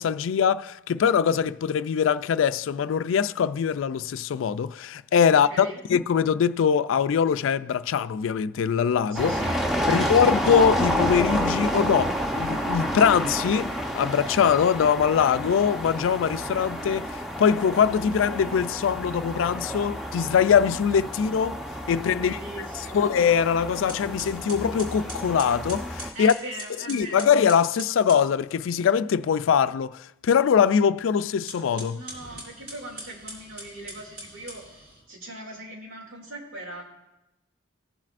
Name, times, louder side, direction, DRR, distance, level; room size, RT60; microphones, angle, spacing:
voice 1, 0.0-9.3 9.9-21.6 21.9-22.4 22.9-26.3 26.9-32.0, left 7 dB, 85° left, 0.3 m, -22 dB
voice 2, 5.3-5.8 9.1-10.2 22.1-23.0 26.1-27.3 31.9-36.8, right 1 dB, 90° right, 2.5 m, -40 dB
sound 1, 9.1-26.1, equal, ahead, 0.7 m, -30 dB
sound 2, 23.9-28.3 31.4-35.0, right 1 dB, 55° right, 3.9 m, -42 dB
19.5 x 7.4 x 2.5 m
head